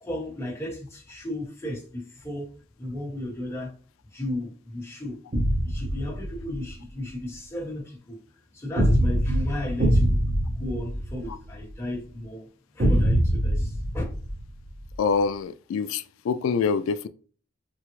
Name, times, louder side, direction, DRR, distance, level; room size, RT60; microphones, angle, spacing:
voice 1, 0.0-3.7 4.1-5.2 5.6-8.2 8.5-10.2 10.6-12.5 12.7-14.0, left 1 dB, 10° left, 1.0 m, -34 dB
sound 1, 5.3-6.7 8.8-11.7 12.8-14.9, equal, 45° right, 0.8 m, -24 dB
voice 2, 15.0-17.1, left 5 dB, 85° left, 0.3 m, -25 dB
3.7 x 2.0 x 3.0 m
head